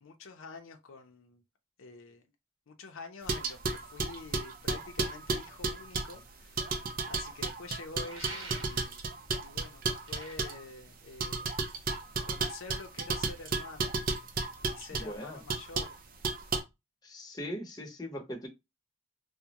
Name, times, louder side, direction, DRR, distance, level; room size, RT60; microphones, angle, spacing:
voice 1, 0.0-1.4 1.8-2.2 2.7-6.7 7.1-9.0 9.4-11.5 12.2-13.9 14.6-16.0, left 4 dB, 80° left, 0.5 m, -47 dB
sound 1, 3.3-6.2 6.6-10.6 11.2-15.1 15.5-15.9 16.2-16.6, right 4 dB, 45° right, 0.5 m, -33 dB
sound 2, 8.1-9.1 9.9-11.6, right 2 dB, 75° right, 0.8 m, -47 dB
voice 2, 14.9-15.4 17.0-18.5, equal, 20° left, 0.8 m, -40 dB
3.5 x 2.1 x 2.8 m
head